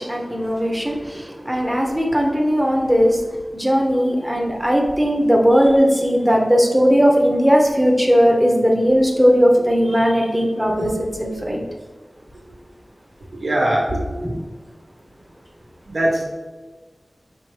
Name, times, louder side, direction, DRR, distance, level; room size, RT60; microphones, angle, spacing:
voice 1, 0.0-3.2 3.5-10.9 11.2-11.6 14.2-14.3, equal, 10° right, -1 dB, 0.8 m, -17 dB
voice 2, 13.3-14.0 15.9-16.2, right 1 dB, 80° right, -3 dB, 1.1 m, -20 dB
4.7 x 3.3 x 3.2 m, 1.3 s
wide cardioid pair, 60°, 0 cm